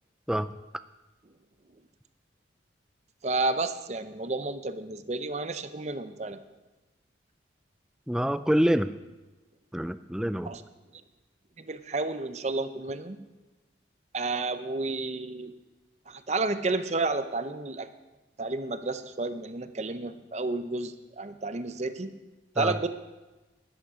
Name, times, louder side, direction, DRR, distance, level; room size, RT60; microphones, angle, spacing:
voice 1, 3.2-6.4 10.5-10.6 11.6-13.2 14.1-15.5 16.1-17.9 18.4-22.2 22.6-22.9, right 3 dB, 35° right, 10 dB, 0.6 m, -31 dB
voice 2, 8.1-8.9 9.7-10.5 22.6-22.8, equal, 5° right, 13 dB, 0.3 m, -26 dB
13.0 x 11.5 x 5.0 m, 1.1 s
head